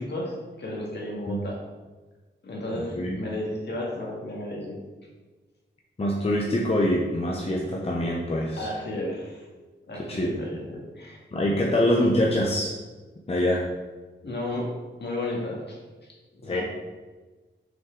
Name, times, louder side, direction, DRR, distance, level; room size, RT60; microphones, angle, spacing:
voice 1, 0.0-1.6 2.4-4.8 8.6-9.5 9.9-11.2 11.7-11.8 14.2-14.7 15.0-15.8 16.4-16.6, left 1 dB, 55° left, -2 dB, 1.8 m, -33 dB
voice 2, 2.7-3.2 6.0-8.7 10.0-10.4 11.3-12.7 13.3-13.7 16.5-16.6, left 1 dB, 30° left, -2 dB, 0.7 m, -25 dB
6.2 x 5.6 x 3.8 m, 1.3 s
wide cardioid pair, 145°, 20 cm